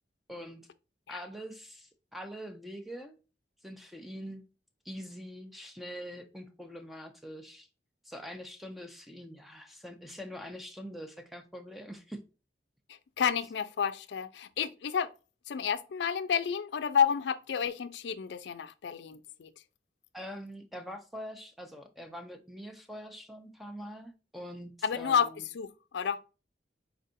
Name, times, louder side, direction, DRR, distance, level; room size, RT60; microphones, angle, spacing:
voice 1, 0.3-0.7 1.1-3.2 3.6-4.4 4.8-7.7 8.0-12.2 20.1-25.5, equal, ahead, 0.5 m, -44 dB
voice 2, 13.2-15.1 15.5-19.5 24.8-25.3 25.5-25.7 25.9-26.2, left 7 dB, 80° left, 0.4 m, -30 dB
4.4 x 4.0 x 2.5 m
head